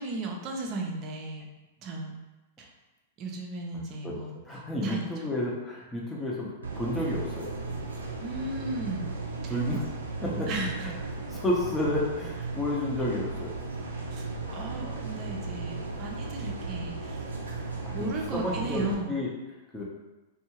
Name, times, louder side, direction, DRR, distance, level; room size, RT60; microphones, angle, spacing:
voice 1, 0.0-1.5 1.8-2.2 2.6-2.7 3.2-4.4 4.8-5.3 8.2-9.1 9.4-9.5 10.5-10.9 14.1-14.3 14.5-17.2 17.9-19.1, right 2 dB, 40° right, 1 dB, 0.6 m, -35 dB
voice 2, 4.5-6.5 6.7-7.5 9.5-9.9 10.2-11.0 11.3-13.5 14.4-15.0 17.8-19.3 19.7-19.8, left 1 dB, 10° left, -5 dB, 0.7 m, -31 dB
sound 1, 6.6-18.9, right 3 dB, 90° right, 0.4 m, -36 dB
2.6 x 2.3 x 2.9 m, 1.1 s
hypercardioid pair, 110°, 0 cm